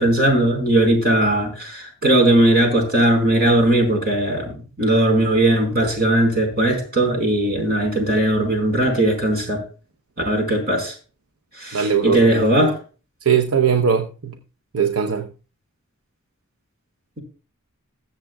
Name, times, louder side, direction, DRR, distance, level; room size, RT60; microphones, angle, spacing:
voice 1, 0.0-9.6 10.2-10.9 11.6-12.8, right 1 dB, 45° right, 4.5 m, -18 dB
voice 2, 11.7-12.7 13.2-14.4 14.7-15.3, right 7 dB, 75° right, 0.8 m, -20 dB
22.0 x 7.4 x 2.3 m
head